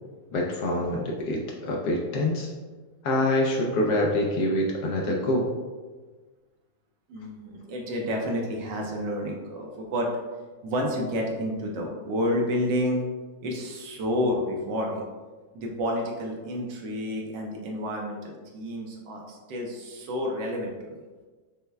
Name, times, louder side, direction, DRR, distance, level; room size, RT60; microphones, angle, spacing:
voice 1, 0.3-2.5 3.0-5.5, left 1 dB, 70° left, -1 dB, 1.0 m, -25 dB
voice 2, 7.1-10.1 10.6-13.0 13.4-15.0 15.5-21.0, equal, 70° right, 0 dB, 1.2 m, -30 dB
5.5 x 2.1 x 3.3 m, 1.3 s
omnidirectional pair, 2.1 m